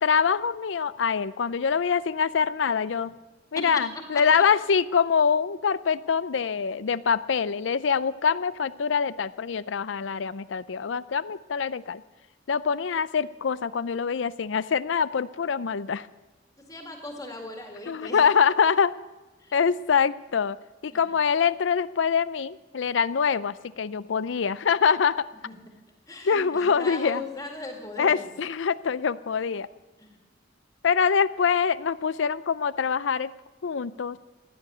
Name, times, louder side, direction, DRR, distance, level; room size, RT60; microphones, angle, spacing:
voice 1, 0.0-3.2 3.5-12.0 12.5-16.1 17.9-18.9 19.5-20.6 20.8-25.3 26.2-27.2 28.0-29.7 30.8-33.3 33.6-34.2, left 6 dB, 80° left, 15 dB, 0.5 m, -24 dB
voice 2, 16.7-18.2 19.4-19.5 20.9-21.0 25.4-25.5 26.1-28.2 30.0-30.1, left 2 dB, 20° left, 2 dB, 2.0 m, -38 dB
16.0 x 10.5 x 7.8 m, 1.2 s
head